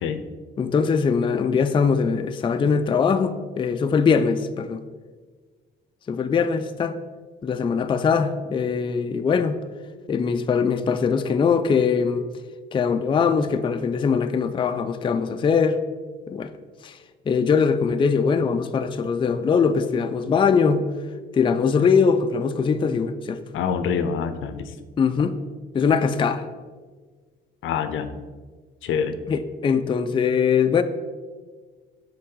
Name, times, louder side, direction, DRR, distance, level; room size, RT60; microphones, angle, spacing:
voice 1, 0.6-4.8 6.1-7.0 7.4-9.6 10.1-12.2 12.7-15.8 16.3-16.5 16.8-17.0 17.3-20.9 21.3-23.4 25.0-25.4 25.7-26.4 29.3-30.8, left 6 dB, 25° left, 0.3 m, -21 dB
voice 2, 23.5-24.6 27.6-28.1 28.8-29.2, left 7 dB, 80° left, 0.5 m, -25 dB
6.7 x 3.9 x 3.7 m
cardioid pair, 90°, 20 cm